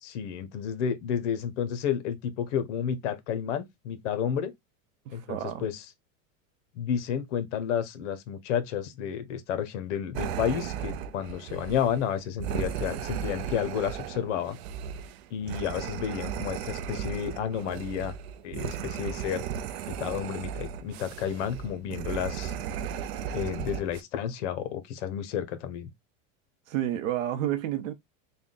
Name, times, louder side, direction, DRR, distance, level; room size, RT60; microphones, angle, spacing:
voice 1, 0.0-4.5 5.1-5.8 6.8-14.6 15.3-18.1 18.4-19.5 19.9-22.5 23.3-25.9, left 8 dB, 65° left, 0.9 m, -31 dB
voice 2, 5.1-5.7 26.7-27.9, right 12 dB, 75° right, 0.8 m, -30 dB
sound 1, 10.1-24.0, right 9 dB, 55° right, 0.5 m, -36 dB
3.5 x 2.3 x 3.7 m
supercardioid pair, 165°, 39 cm